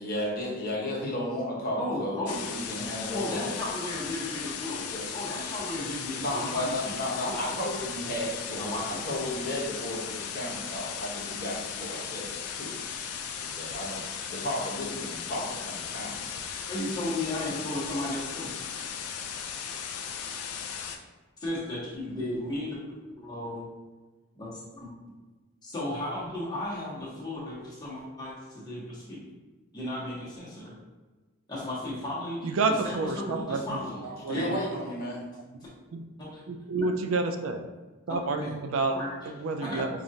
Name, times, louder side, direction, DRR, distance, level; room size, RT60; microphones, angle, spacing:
voice 1, 0.0-3.6 4.9-5.1 6.2-12.8 13.4-16.2 34.3-35.3, left 1 dB, 45° left, -4 dB, 0.9 m, -33 dB
voice 2, 1.8-2.4 3.1-6.9 7.2-7.5 8.5-9.1 16.7-18.5 21.4-22.8 23.2-23.7 24.3-24.9 25.6-29.2 29.7-30.7 31.5-34.5 36.2-36.4 36.7-36.9 38.1-38.5 38.9-39.3 39.6-39.9, left 1 dB, 20° left, -7 dB, 1.0 m, -35 dB
sound 1, 2.3-21.0, left 7 dB, 90° left, 0.4 m, -37 dB
voice 3, 32.4-33.8 34.0-34.6 35.9-36.0 36.5-37.6 38.1-39.0 39.4-39.9, right 3 dB, 65° right, 6 dB, 0.3 m, -29 dB
5.0 x 2.4 x 2.7 m, 1.2 s
head